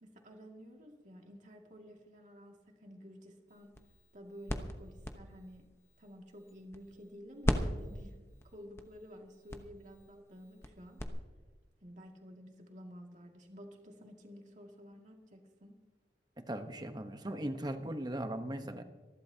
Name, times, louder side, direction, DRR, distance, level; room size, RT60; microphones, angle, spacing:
voice 1, 0.0-3.7 4.1-5.7 6.0-8.1 8.4-11.0 11.8-15.8, equal, 45° right, 1 dB, 2.2 m, -52 dB
sound 1, 3.5-7.1 7.4-11.1, equal, 15° left, 1.0 m, -39 dB
voice 2, 16.4-18.8, right 1 dB, 25° right, 7 dB, 1.0 m, -38 dB
26.0 x 11.5 x 2.8 m, 1.3 s
head